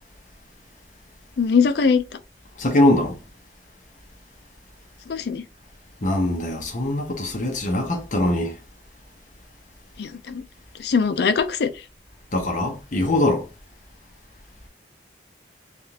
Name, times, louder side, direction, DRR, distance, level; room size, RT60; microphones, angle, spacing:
voice 1, 1.4-2.0 5.1-5.4 10.0-10.4 10.8-11.7, left 5 dB, 65° left, 0.4 m, -21 dB
voice 2, 2.6-3.1 6.0-8.5 12.3-13.5, left 1 dB, 45° left, 0.8 m, -22 dB
3.5 x 2.4 x 2.7 m
head